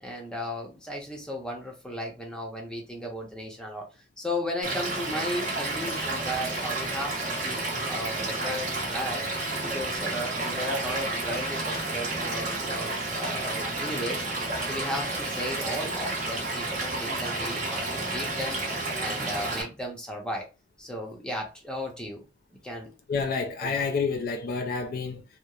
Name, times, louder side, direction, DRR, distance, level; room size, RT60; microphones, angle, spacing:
voice 1, 0.0-3.9 4.2-7.1 7.4-9.2 9.6-14.3 14.6-18.6 19.0-20.5 20.8-22.2 22.5-22.9 23.6-23.9, equal, 5° left, 0.7 m, -35 dB
Stream / Liquid, 4.6-19.6, right 2 dB, 45° right, 0.8 m, -31 dB
voice 2, 23.1-25.2, left 5 dB, 55° left, 0.3 m, -29 dB
2.9 x 2.0 x 2.3 m
head